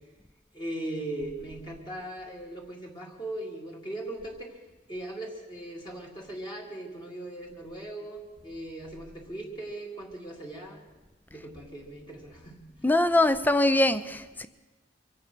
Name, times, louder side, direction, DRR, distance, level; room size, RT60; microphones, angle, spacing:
voice 1, 0.5-4.6 4.9-10.8 11.3-12.6, right 1 dB, 25° left, -2 dB, 2.1 m, -39 dB
voice 2, 12.8-14.5, left 1 dB, 10° left, 12 dB, 0.5 m, -23 dB
24.0 x 8.6 x 6.1 m, 1.2 s
head